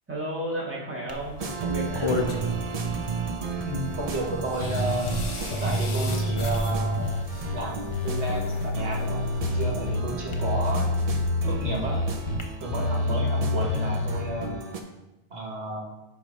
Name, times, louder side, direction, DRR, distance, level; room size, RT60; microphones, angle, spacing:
voice 1, 0.1-2.4 14.1-14.3, right 1 dB, 10° right, -5 dB, 1.5 m, -33 dB
sound 1, 1.1-12.4, left 2 dB, 35° left, 0.6 m, -37 dB
sound 2, 1.4-14.8, right 4 dB, 40° right, 0.6 m, -34 dB
voice 2, 3.6-5.2 5.5-7.1 7.5-10.9 11.5-12.0 12.6-14.5 15.3-15.8, right 1 dB, 80° right, -2 dB, 1.5 m, -32 dB
sound 3, 4.6-5.2 5.5-7.6 7.9-10.0 10.3-12.4 12.7-14.2, left 1 dB, 85° left, 1.1 m, -27 dB
7.8 x 3.0 x 5.1 m, 0.99 s
omnidirectional pair, 1.1 m